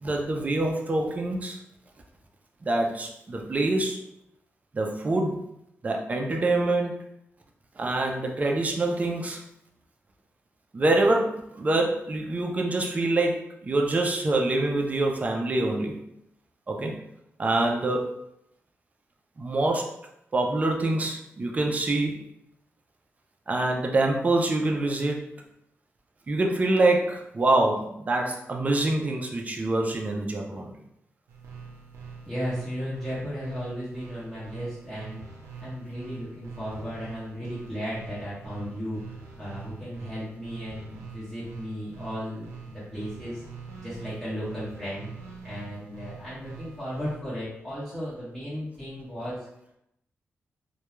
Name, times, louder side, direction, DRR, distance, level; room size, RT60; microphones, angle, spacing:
voice 1, 0.0-1.6 2.6-4.0 4.7-5.4 5.8-7.0 7.8-9.4 10.7-16.0 16.7-17.0 17.4-18.2 19.4-19.9 20.3-22.3 23.5-25.3 26.3-30.7, right 2 dB, 30° right, 1 dB, 0.4 m, -25 dB
sound 1, 31.3-47.2, right 5 dB, 85° right, 0.5 m, -44 dB
voice 2, 32.3-35.2 35.6-39.0 39.4-43.4 43.8-45.1 45.4-49.4, equal, 10° left, -11 dB, 1.0 m, -35 dB
2.2 x 2.2 x 3.0 m, 0.80 s
cardioid pair, 105°, 5 cm